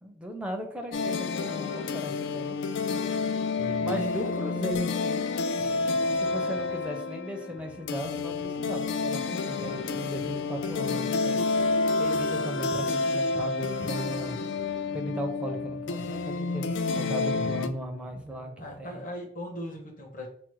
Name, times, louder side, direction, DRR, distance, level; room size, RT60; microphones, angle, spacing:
voice 1, 0.0-2.6 3.8-5.2 6.1-11.4 11.9-14.4 14.9-18.5 18.8-19.0, equal, 5° right, 3 dB, 0.5 m, -36 dB
sound 1, 0.9-17.7, left 3 dB, 65° left, 0.3 m, -29 dB
voice 2, 3.6-4.0 17.3-17.7 18.6-20.3, equal, 40° left, -1 dB, 0.9 m, -38 dB
sound 2, 3.6-4.8 5.6-6.8 7.5-8.8 9.6-10.8 11.5-12.8 13.6-14.8 15.5-16.8 17.6-18.8 19.5-19.6, right 3 dB, 75° right, 0.5 m, -52 dB
5.9 x 2.0 x 3.0 m, 0.63 s
head